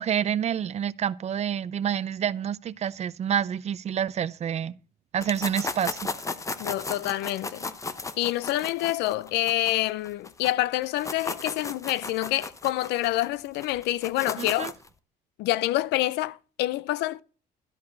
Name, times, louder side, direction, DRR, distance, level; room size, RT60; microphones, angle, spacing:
voice 1, 0.0-4.8 5.1-6.0 14.4-14.7, right 9 dB, 40° right, 0.5 m, -28 dB
sound 1, 5.2-10.5 10.8-14.9, left 3 dB, 20° left, 0.8 m, -35 dB
voice 2, 6.6-7.7 8.2-14.7 15.4-17.2, left 16 dB, 85° left, 0.5 m, -27 dB
12.5 x 4.7 x 7.1 m
cardioid pair, 110°, 17 cm